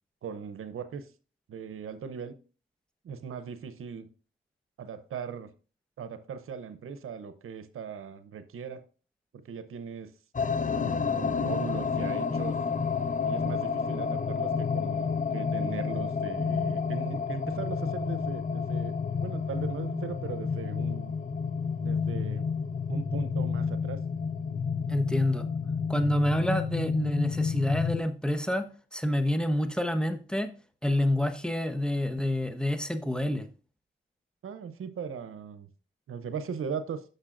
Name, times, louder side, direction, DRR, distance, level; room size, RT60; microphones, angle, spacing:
voice 1, 0.2-1.1 1.5-2.3 3.0-4.1 4.8-5.5 6.0-8.8 9.3-10.1 10.6-12.6 13.2-18.9 19.2-21.1 21.8-22.5 22.9-24.0 34.4-35.7 36.1-37.0, right 6 dB, 85° right, 0.7 m, -39 dB
sound 1, 10.3-28.0, left 5 dB, 35° left, 0.7 m, -30 dB
voice 2, 24.9-25.4 25.9-28.7 28.9-30.5 30.8-33.5, left 1 dB, 5° left, 1.1 m, -27 dB
9.7 x 6.6 x 2.5 m
cardioid pair, 45°, 21 cm